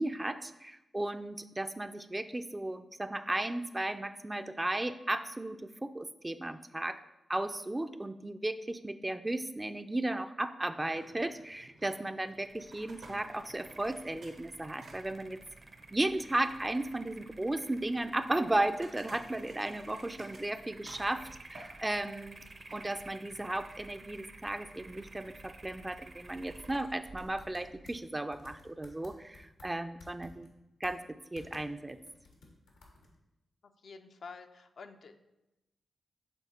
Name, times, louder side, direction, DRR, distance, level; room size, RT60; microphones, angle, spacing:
voice 1, 0.0-7.0 7.3-15.4 15.9-22.4 22.7-30.5 30.8-32.0, right 1 dB, 20° right, 10 dB, 0.4 m, -35 dB
sound 1, 10.7-22.9, right 2 dB, 75° right, 1.2 m, -57 dB
sound 2, 12.2-28.6, right 3 dB, 50° right, 0.7 m, -53 dB
sound 3, 27.0-28.0 28.3-29.7 30.0-30.5 30.8-31.0 31.3-31.6 31.9-33.2, left 3 dB, 90° left, 1.1 m, -55 dB
voice 2, 33.6-35.2, left 4 dB, 65° left, 6 dB, 0.5 m, -49 dB
7.1 x 3.6 x 4.2 m, 0.95 s
supercardioid pair, 40°, 0 cm